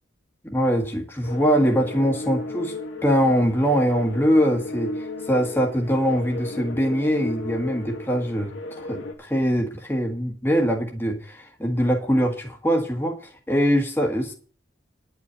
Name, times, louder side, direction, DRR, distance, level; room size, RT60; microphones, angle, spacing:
voice 1, 0.4-2.7 3.0-8.5 8.8-14.3, equal, 10° left, 1 dB, 1.7 m, -22 dB
sound 1, 1.2-9.1, left 2 dB, 85° left, 2.3 m, -34 dB
10.5 x 5.6 x 8.6 m, 0.42 s
head